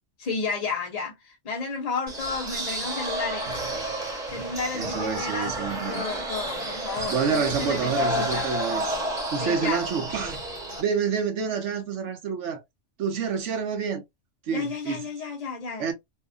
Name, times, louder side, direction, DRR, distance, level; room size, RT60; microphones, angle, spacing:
voice 1, 0.2-3.5 4.3-8.5 9.3-9.8 14.5-15.9, left 4 dB, 50° left, 0.5 m, -32 dB
sound 1, 2.1-10.8, right 1 dB, 35° right, 1.0 m, -31 dB
voice 2, 4.7-6.3 7.1-9.0 9.3-10.4 10.8-12.6 13.0-14.0 14.5-15.0 15.8-15.9, right 6 dB, 70° right, 1.1 m, -28 dB
2.7 x 2.4 x 2.3 m
omnidirectional pair, 1.3 m